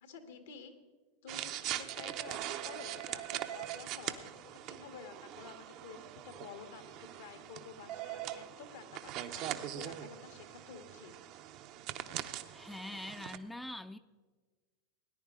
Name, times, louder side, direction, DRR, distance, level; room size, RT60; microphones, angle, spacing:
voice 1, 0.0-0.7 1.2-11.4, left 6 dB, 75° left, 7 dB, 1.5 m, -51 dB
sound 1, 1.3-13.4, right 12 dB, 50° right, 0.7 m, -42 dB
voice 2, 12.5-14.0, left 1 dB, 5° left, 10 dB, 0.5 m, -44 dB
18.0 x 10.0 x 3.7 m, 1.4 s
hypercardioid pair, 95°, 0 cm